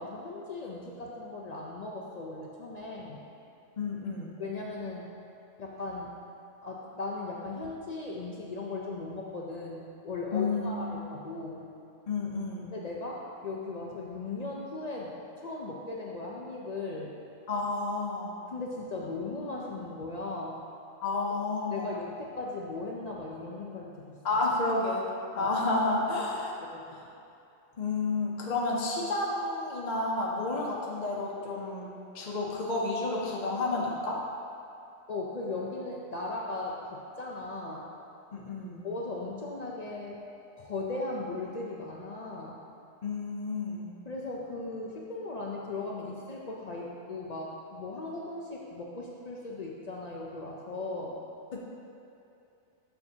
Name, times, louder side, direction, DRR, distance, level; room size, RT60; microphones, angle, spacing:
voice 1, 0.0-3.2 4.4-5.1 5.6-6.1 6.6-11.7 12.7-17.1 18.5-20.6 21.7-24.2 25.4-25.5 26.6-27.0 35.1-37.9 38.8-40.2 40.6-42.6 44.1-51.2, left 3 dB, 70° left, -3 dB, 0.4 m, -37 dB
voice 2, 3.8-4.4 10.3-11.0 12.1-12.7 17.5-18.3 21.0-21.9 24.2-25.0 25.4-26.5 26.9-27.0 27.8-31.9 32.1-34.2 38.3-38.8 43.0-43.9 51.5-51.6, left 3 dB, 40° left, -4 dB, 0.7 m, -30 dB
6.7 x 6.6 x 2.7 m, 2.6 s
omnidirectional pair, 1.3 m